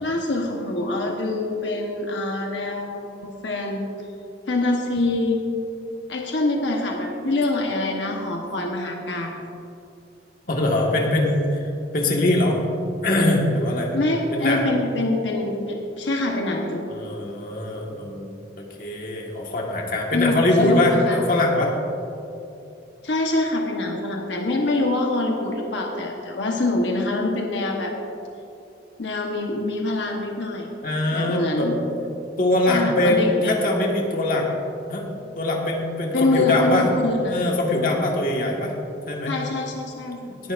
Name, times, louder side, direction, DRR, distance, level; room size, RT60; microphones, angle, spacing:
voice 1, 0.0-3.8 4.5-5.4 6.1-9.4 13.9-16.8 20.1-21.2 23.0-27.9 29.0-30.7 31.1-31.8 32.7-33.5 36.1-37.4 39.3-40.3, left 2 dB, 85° left, 1 dB, 1.1 m, -25 dB
voice 2, 10.5-11.6 11.9-12.6 13.0-13.9 14.3-14.7 16.9-18.3 18.6-21.7 30.8-31.7 32.4-34.5 34.9-35.1 35.4-36.9 37.3-38.8 39.1-39.3 40.4-40.5, left 1 dB, 50° left, -1 dB, 1.6 m, -22 dB
18.5 x 10.5 x 2.5 m, 2.7 s
head